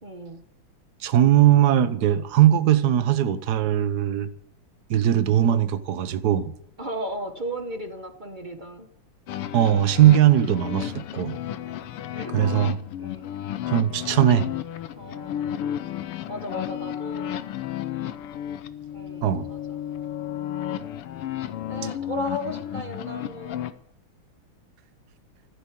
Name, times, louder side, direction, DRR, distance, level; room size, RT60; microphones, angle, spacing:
voice 1, 0.0-0.4 5.4-5.6 6.8-8.9 12.1-12.7 13.0-13.3 15.0-15.7 16.3-17.3 18.9-19.8 21.7-23.6, equal, 30° right, 1.0 m, -35 dB
voice 2, 1.0-4.3 4.9-6.5 9.5-11.4 12.3-12.8 13.7-14.5 19.2-19.5, right 11 dB, 55° right, 1.3 m, -19 dB
sound 1, 9.3-23.7, left 11 dB, 80° left, 1.8 m, -33 dB
15.0 x 8.3 x 9.4 m
omnidirectional pair, 2.4 m